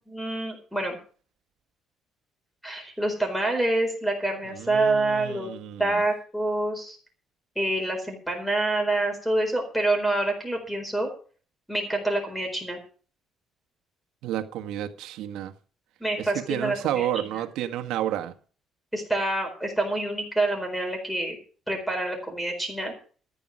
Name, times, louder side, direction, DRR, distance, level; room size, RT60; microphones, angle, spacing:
voice 1, 0.1-1.0 2.6-5.5 5.8-7.0 7.6-11.1 11.7-12.8 16.0-17.1 18.9-21.4 21.7-22.9, right 2 dB, ahead, 4.5 m, -27 dB
voice 2, 4.5-6.0 14.2-15.5 16.2-18.3, right 12 dB, 85° right, 1.5 m, -31 dB
14.0 x 9.4 x 6.1 m
cardioid pair, 160°, 0 cm